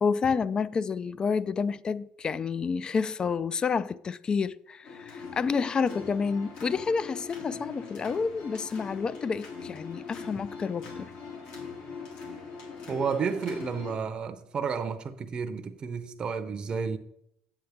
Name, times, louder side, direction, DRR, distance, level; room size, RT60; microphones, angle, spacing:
voice 1, 0.0-11.1, left 5 dB, 30° left, 0.3 m, -29 dB
sound 1, 4.8-13.9, left 5 dB, 70° left, 2.9 m, -42 dB
voice 2, 12.9-17.0, right 6 dB, 30° right, 0.6 m, -31 dB
7.9 x 7.7 x 3.5 m
supercardioid pair, 105°, 3 cm